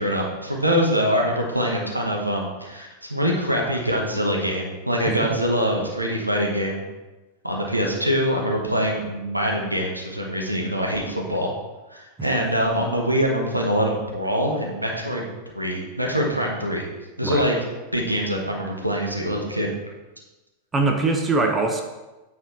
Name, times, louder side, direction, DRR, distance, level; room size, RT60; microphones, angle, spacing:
voice 1, 0.0-6.8 7.4-11.5 11.9-15.2 15.5-16.8 17.2-17.5 17.9-19.8, equal, 85° right, -1 dB, 1.3 m, -24 dB
voice 2, 5.1-5.4 17.2-17.5 20.7-21.8, right 3 dB, 20° right, 4 dB, 0.9 m, -22 dB
8.9 x 4.3 x 4.3 m, 1.1 s
figure-of-eight pair, 90°, 0 cm